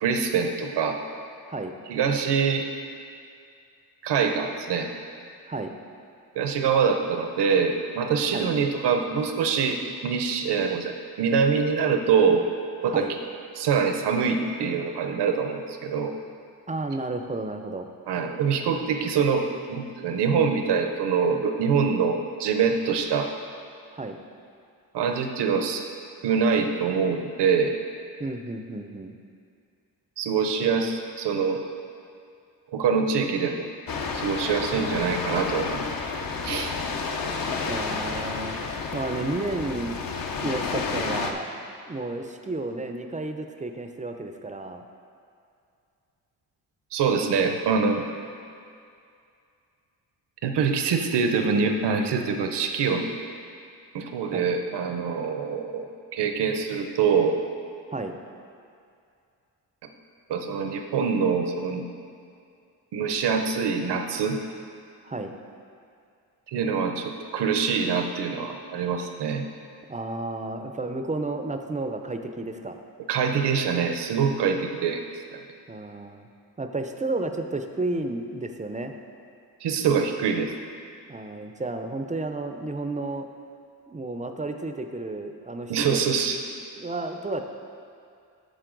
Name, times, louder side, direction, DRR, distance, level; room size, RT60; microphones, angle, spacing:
voice 1, 0.0-1.0 1.9-2.6 4.0-4.9 6.4-12.5 12.8-13.0 13.6-16.1 18.1-23.3 24.9-25.8 26.2-27.7 30.2-31.6 32.7-33.7 34.1-35.9 36.4-36.7 46.9-48.0 50.4-53.1 53.9-55.9 56.1-57.4 60.3-61.8 62.9-64.4 66.5-69.5 73.1-75.0 75.3-75.4 79.6-80.5 85.7-86.4, right 6 dB, 80° right, 5 dB, 0.8 m, -24 dB
voice 2, 16.7-17.9 23.9-24.2 28.2-29.2 37.7-40.0 40.4-41.5 41.9-44.8 47.1-47.6 54.3-54.5 57.9-58.2 65.1-65.3 69.9-72.8 75.7-76.3 76.6-78.9 81.1-83.3 83.9-86.0 86.8-87.4, right 2 dB, 20° right, 6 dB, 0.4 m, -32 dB
sound 1, 33.9-41.3, left 4 dB, 55° left, 0.8 m, -30 dB
9.1 x 6.6 x 3.9 m, 2.4 s
cardioid pair, 100°, 40 cm